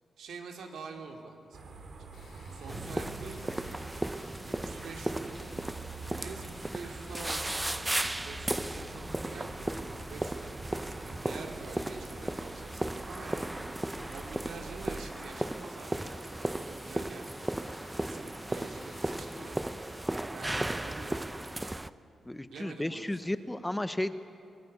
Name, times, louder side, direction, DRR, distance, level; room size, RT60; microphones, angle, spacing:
voice 1, 0.2-1.6 2.5-3.6 4.5-5.4 6.1-10.5 11.0-13.5 14.0-17.5 18.0-19.7 20.2-21.5 22.5-23.3, right 5 dB, 85° right, 3 dB, 2.6 m, -47 dB
sound 1, 1.5-15.1, right 3 dB, 70° right, 3.3 m, -47 dB
sound 2, 2.1-20.1, left 4 dB, 70° left, 3.0 m, -56 dB
sound 3, 2.7-21.9, right 1 dB, 15° right, 0.7 m, -36 dB
voice 2, 22.2-24.1, left 1 dB, 10° left, 11 dB, 1.0 m, -33 dB
25.0 x 18.0 x 8.6 m, 2.6 s
cardioid pair, 70°, 0 cm